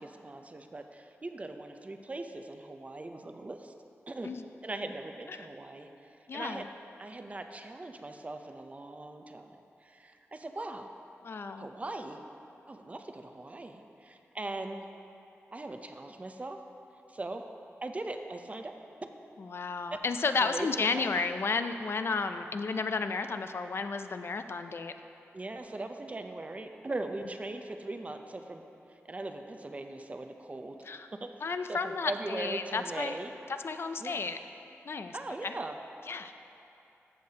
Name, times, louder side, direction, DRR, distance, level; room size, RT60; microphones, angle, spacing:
voice 1, 0.0-3.7 4.1-4.3 4.6-6.7 7.0-10.9 11.6-12.2 12.7-14.8 15.5-16.6 17.1-17.4 17.8-18.7 19.9-20.0 20.4-20.7 20.9-21.2 25.3-28.6 28.9-30.8 31.1-31.3 31.7-33.4 34.0-34.2 35.1-35.8, right 2 dB, 30° right, 6 dB, 0.5 m, -40 dB
voice 2, 6.3-6.7 11.2-11.7 19.4-24.9 30.8-31.1 31.4-33.2 33.6-34.4 34.8-35.5 36.1-36.3, left 4 dB, 55° left, 9 dB, 0.4 m, -33 dB
14.0 x 6.6 x 2.8 m, 2.8 s
wide cardioid pair, 90°, 5 cm